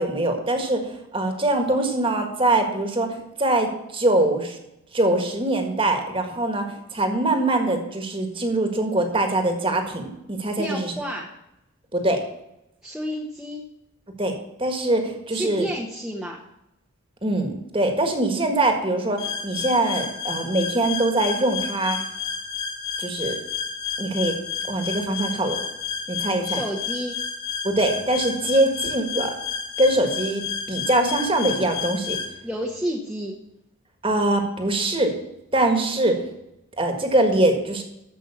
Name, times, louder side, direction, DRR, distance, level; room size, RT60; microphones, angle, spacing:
voice 1, 0.0-4.6 4.9-6.6 6.9-10.9 11.9-12.2 14.2-14.3 14.6-15.7 17.2-22.0 23.0-23.3 24.0-24.4 24.7-25.6 26.1-26.6 27.6-29.3 29.8-30.4 30.7-32.2 34.0-35.1 35.5-36.2 36.8-37.8, right 1 dB, 25° right, 4 dB, 1.6 m, -23 dB
voice 2, 10.6-11.3 12.8-13.6 15.3-16.4 26.4-27.2 32.4-33.4, equal, 5° right, -2 dB, 1.0 m, -30 dB
sound 1, 19.2-32.3, left 6 dB, 85° left, 3.3 m, -31 dB
13.5 x 5.4 x 7.1 m, 0.86 s
head